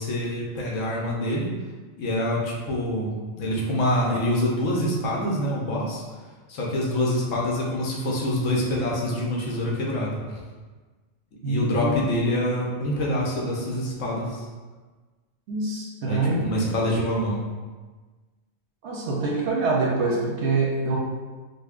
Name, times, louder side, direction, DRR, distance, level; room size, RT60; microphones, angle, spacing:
voice 1, 0.0-1.5 2.0-6.0 6.5-10.4 11.4-14.5 16.1-17.4, left 1 dB, 70° left, -4 dB, 1.1 m, -26 dB
voice 2, 11.4-12.0 15.5-16.7 18.8-21.0, right 3 dB, 65° right, -3 dB, 0.8 m, -25 dB
5.3 x 2.1 x 2.4 m, 1.3 s
omnidirectional pair, 1.5 m